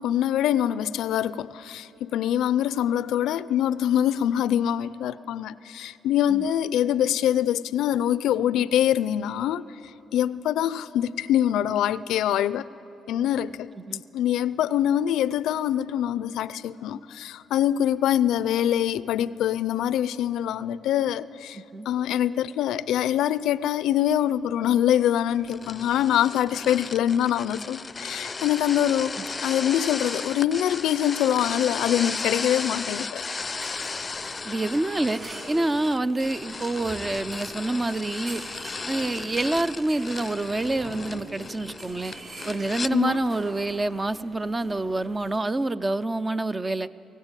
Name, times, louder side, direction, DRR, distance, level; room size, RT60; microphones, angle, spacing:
voice 1, 0.0-9.6 10.1-12.7 13.1-13.7 14.1-21.6 21.9-29.1 29.4-33.2 42.9-43.2, left 11 dB, 85° left, 0.5 m, -24 dB
voice 2, 21.6-21.9 34.4-38.4 38.9-42.1 42.5-46.9, right 2 dB, 20° right, 0.6 m, -27 dB
sound 1, 25.4-42.9, left 4 dB, 30° left, 0.6 m, -35 dB
sound 2, 33.4-45.4, right 2 dB, 45° right, 5.5 m, -44 dB
21.0 x 17.5 x 9.0 m
cardioid pair, 90°, 0 cm